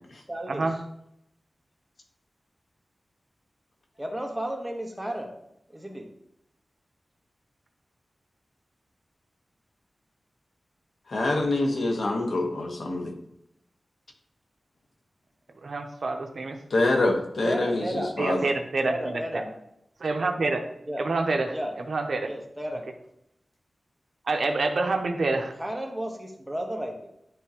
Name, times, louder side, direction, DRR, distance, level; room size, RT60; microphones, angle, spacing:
voice 1, 0.3-0.7 4.0-5.3 5.7-6.1 17.4-18.4 18.8-19.5 20.9-21.0 21.5-21.7 22.2-22.8 25.6-27.1, right 1 dB, 10° right, 1 dB, 1.2 m, -33 dB
voice 2, 11.1-13.1 16.7-18.4, left 2 dB, 75° left, 2 dB, 1.2 m, -25 dB
voice 3, 15.6-16.6 18.2-19.4 20.0-20.6 21.0-21.6 21.9-22.3 24.3-25.5, right 3 dB, 65° right, 5 dB, 0.7 m, -27 dB
11.0 x 3.6 x 2.9 m, 0.79 s
wide cardioid pair, 105°, 0 cm